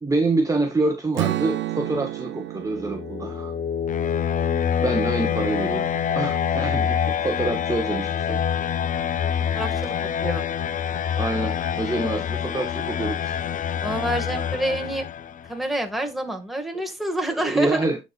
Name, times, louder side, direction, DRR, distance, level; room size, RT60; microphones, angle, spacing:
voice 1, 0.0-3.5 4.8-5.9 6.1-8.4 11.2-13.4 17.4-18.0, right 2 dB, 15° right, 0.9 m, -26 dB
Strum, 1.2-5.3, right 15 dB, 70° right, 0.5 m, -32 dB
sound 1, 2.6-15.5, left 8 dB, 40° left, 0.5 m, -26 dB
voice 2, 9.5-9.9 10.2-10.4 13.8-15.1 15.5-17.9, right 1 dB, ahead, 1.7 m, -27 dB
10.5 x 4.2 x 2.3 m
cardioid pair, 90°, 20 cm